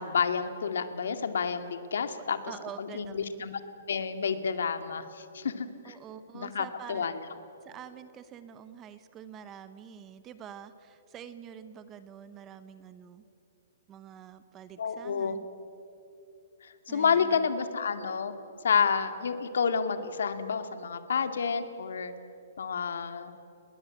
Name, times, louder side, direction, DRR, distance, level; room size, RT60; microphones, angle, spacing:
voice 1, 0.0-2.4 2.8-3.6 3.9-6.0 6.3-7.2 14.8-15.4 16.6-18.3 18.6-22.1 22.6-23.3, left 6 dB, 75° left, 9 dB, 2.2 m, -29 dB
voice 2, 2.5-3.3 5.8-7.1 7.6-13.2 13.9-15.5 16.9-17.5, right 8 dB, 15° right, 12 dB, 0.8 m, -46 dB
30.0 x 20.5 x 8.7 m, 2.8 s
hypercardioid pair, 175°, 0 cm